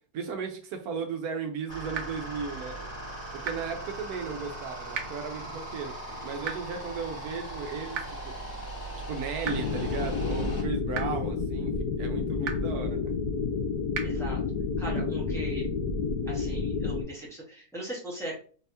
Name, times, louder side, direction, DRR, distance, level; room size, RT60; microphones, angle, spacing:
voice 1, 0.1-2.7 3.3-5.9 6.2-8.3 9.1-11.7 12.0-13.1, right 5 dB, 80° right, 5 dB, 1.2 m, -35 dB
sound 1, 1.7-10.6, right 2 dB, 45° left, 2.3 m, -39 dB
sound 2, 1.9-2.0 3.4-3.5 4.9-5.0 6.4-6.5 7.9-8.0 9.4-9.5 10.9-11.0 12.4-12.5 13.9-14.0, right 7 dB, 60° right, 0.9 m, -32 dB
sound 3, 9.5-17.0, left 4 dB, 80° left, 1.3 m, -30 dB
voice 2, 14.0-14.4 14.8-15.7 16.3-18.4, right 1 dB, ahead, -5 dB, 1.4 m, -38 dB
4.1 x 3.4 x 2.8 m, 0.41 s
omnidirectional pair, 1.6 m